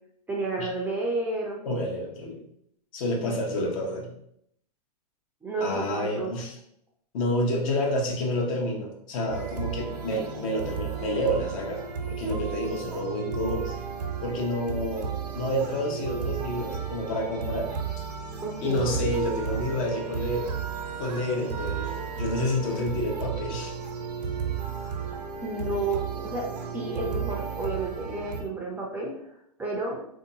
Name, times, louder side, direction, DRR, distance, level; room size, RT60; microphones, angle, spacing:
voice 1, 0.3-1.7 3.2-3.4 5.4-6.3 18.4-19.0 25.4-26.5 26.7-29.1 29.6-30.0, right 3 dB, 10° right, -2 dB, 0.5 m, -31 dB
voice 2, 1.6-2.4 2.9-4.1 5.6-6.5 7.1-13.8 14.2-17.7 18.6-20.5 21.0-23.7, left 1 dB, 55° left, 0 dB, 1.0 m, -29 dB
sound 1, 9.3-28.4, right 6 dB, 80° right, 0.8 m, -33 dB
3.5 x 2.8 x 2.8 m, 0.73 s
hypercardioid pair, 125°, 20 cm